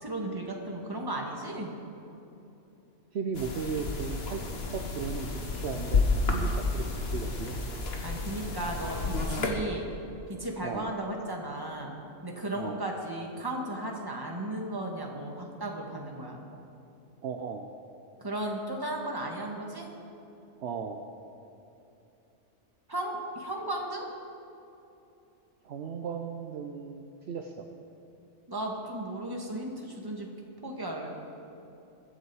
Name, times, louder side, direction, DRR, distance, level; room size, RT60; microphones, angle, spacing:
voice 1, 0.0-1.7 8.0-9.8 10.3-11.9 12.2-16.4 18.2-19.9 22.9-24.1 28.5-30.3 30.6-31.1, right 1 dB, 20° right, 0 dB, 1.6 m, -35 dB
voice 2, 3.1-4.4 4.7-7.6 10.6-10.9 12.5-12.8 17.2-17.7 20.6-21.0 25.6-27.7, right 6 dB, 60° right, 4 dB, 0.9 m, -36 dB
sound 1, 3.3-9.5, left 3 dB, 55° left, 1.5 m, -31 dB
22.0 x 8.3 x 4.8 m, 2.9 s
omnidirectional pair, 1.3 m